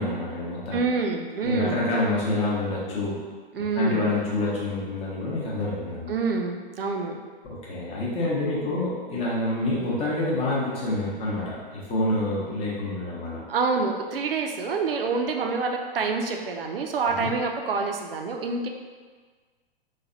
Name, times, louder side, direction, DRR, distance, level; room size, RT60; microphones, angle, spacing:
voice 1, 0.0-0.8 1.4-3.2 3.7-6.1 7.4-13.4 17.2-17.3, left 1 dB, 20° left, -6 dB, 0.7 m, -27 dB
voice 2, 0.7-1.8 3.5-4.1 6.1-7.2 13.5-18.7, right 4 dB, 75° right, 3 dB, 0.4 m, -27 dB
3.3 x 2.2 x 2.5 m, 1.5 s
figure-of-eight pair, 115°, 29 cm